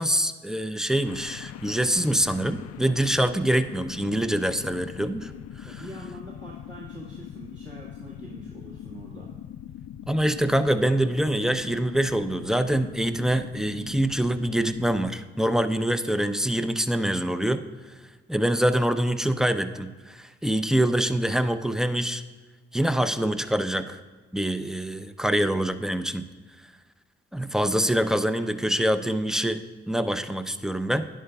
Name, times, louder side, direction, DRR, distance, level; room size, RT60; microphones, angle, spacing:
voice 1, 0.0-5.3 5.6-5.7 10.1-17.6 18.3-22.2 22.7-24.0 24.3-26.3 27.3-31.1, right 1 dB, ahead, 11 dB, 0.5 m, -25 dB
sound 1, 1.0-15.1, left 10 dB, 55° left, 0.4 m, -41 dB
voice 2, 5.6-9.3, right 1 dB, 40° right, -5 dB, 1.9 m, -44 dB
11.0 x 10.0 x 2.3 m, 1.4 s
hypercardioid pair, 40°, 30 cm